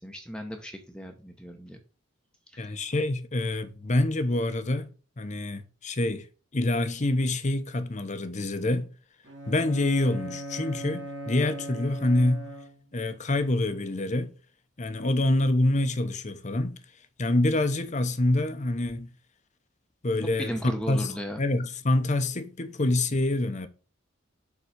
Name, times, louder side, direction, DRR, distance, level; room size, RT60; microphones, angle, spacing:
voice 1, 0.0-1.8 2.5-2.8 20.2-21.4, equal, 5° left, 0.9 m, -36 dB
voice 2, 2.6-4.9 5.2-6.3 6.5-8.9 9.5-12.4 12.9-14.3 14.8-16.8 17.2-19.1 20.0-21.1 21.4-23.7, left 1 dB, 35° left, 0.9 m, -26 dB
Bowed string instrument, 9.2-13.0, equal, 65° right, 2.7 m, -39 dB
7.2 x 3.9 x 6.3 m
head